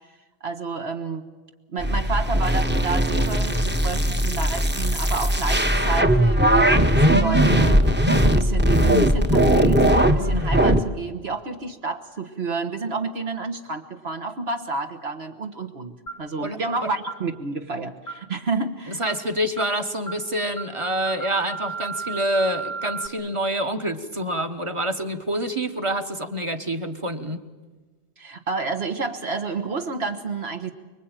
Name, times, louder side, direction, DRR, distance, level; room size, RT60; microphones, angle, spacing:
voice 1, 0.4-1.2 1.7-19.0 28.2-30.7, right 4 dB, 65° right, 6 dB, 1.7 m, -30 dB
sound 1, 1.8-10.8, equal, 10° right, 1.0 m, -19 dB
sound 2, 16.1-16.3 17.1-17.3 18.1-18.3 19.1-19.3 19.6-19.8 20.1-20.3 20.6-23.1, right 4 dB, 70° left, 1.3 m, -34 dB
voice 2, 18.9-27.4, right 1 dB, 30° right, 7 dB, 1.3 m, -27 dB
25.0 x 23.0 x 9.1 m, 1.3 s
omnidirectional pair, 1.1 m